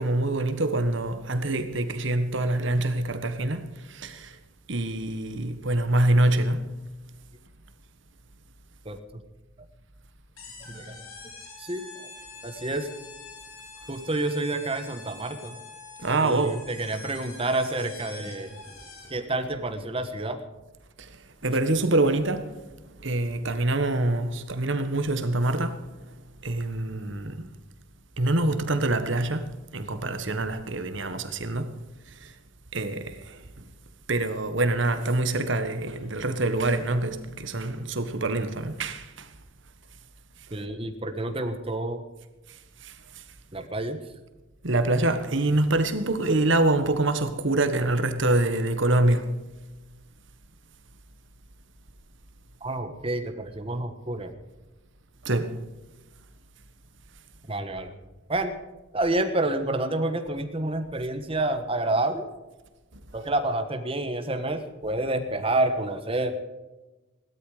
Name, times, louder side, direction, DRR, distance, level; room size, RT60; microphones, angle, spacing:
voice 1, 0.0-4.4 4.7-6.7 16.0-16.7 21.0-21.2 21.4-22.6 23.0-25.9 26.4-27.5 28.2-31.7 32.1-32.3 32.7-33.6 34.1-39.3 42.5-43.2 44.6-49.4 55.2-55.6, right 2 dB, 60° right, 1.4 m, -25 dB
sound 1, 10.4-19.3, left 3 dB, 80° left, 4.5 m, -45 dB
voice 2, 10.7-11.0 11.6-11.8 12.4-12.9 13.9-15.6 16.2-18.6 19.1-20.4 40.5-42.0 43.5-44.0 52.6-54.3 57.5-57.9 58.3-58.5 58.9-62.3 63.1-66.3, right 2 dB, 25° right, 1.4 m, -28 dB
17.0 x 12.5 x 5.0 m
head